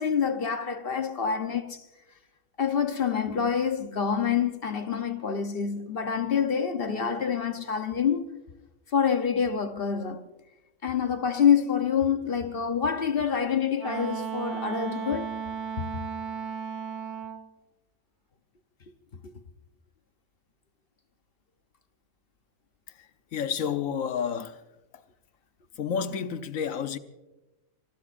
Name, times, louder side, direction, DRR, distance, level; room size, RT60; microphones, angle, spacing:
voice 1, 0.0-1.8 2.6-8.3 8.9-10.2 10.8-15.3 19.2-19.3, left 7 dB, 45° left, 1.0 m, -26 dB
Wind instrument woodwind instrument, 13.8-17.5, right 7 dB, 40° right, 1.0 m, -35 dB
voice 2, 22.9-24.6 24.9-25.0 25.7-27.0, left 7 dB, 75° left, 1.3 m, -31 dB
24.5 x 21.0 x 2.5 m
omnidirectional pair, 1.4 m